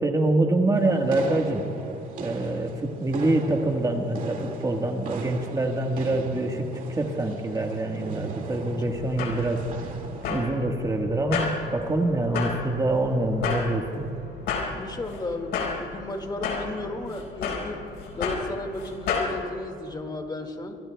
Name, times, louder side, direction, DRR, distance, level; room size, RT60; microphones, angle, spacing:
voice 1, 0.0-1.7 2.2-10.0 10.3-14.2, right 2 dB, 20° right, 2 dB, 1.4 m, -25 dB
sound 1, 0.7-10.3, right 4 dB, 50° right, 2.0 m, -38 dB
sound 2, 8.9-19.3, left 5 dB, 75° left, 4.4 m, -32 dB
voice 2, 14.8-17.8 18.1-20.8, left 2 dB, 25° left, 5 dB, 1.9 m, -34 dB
27.5 x 23.5 x 2.2 m, 2.8 s
cardioid pair, 110°, 17 cm